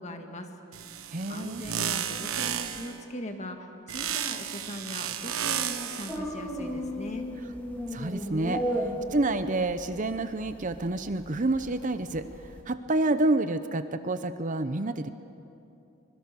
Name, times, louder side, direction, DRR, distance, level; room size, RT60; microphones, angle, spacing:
voice 1, 0.0-1.0 1.3-7.3, equal, 35° left, 4 dB, 1.8 m, -40 dB
sound 1, 0.7-3.0 3.9-6.2, right 9 dB, 80° right, 1.2 m, -32 dB
voice 2, 1.1-1.6 7.8-15.1, right 2 dB, 40° right, 10 dB, 0.7 m, -29 dB
sound 2, 6.1-12.6, equal, 5° left, 2.6 m, -35 dB
24.5 x 22.0 x 6.9 m, 2.7 s
head